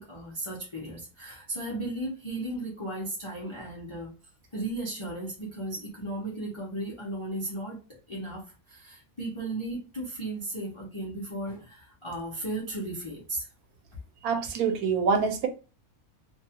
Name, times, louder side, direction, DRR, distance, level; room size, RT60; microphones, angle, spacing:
voice 1, 0.0-4.1 4.5-13.5, right 1 dB, 30° left, 0.6 m, -35 dB
voice 2, 14.2-15.5, right 5 dB, 80° right, 1.1 m, -25 dB
2.7 x 2.3 x 2.8 m
omnidirectional pair, 1.5 m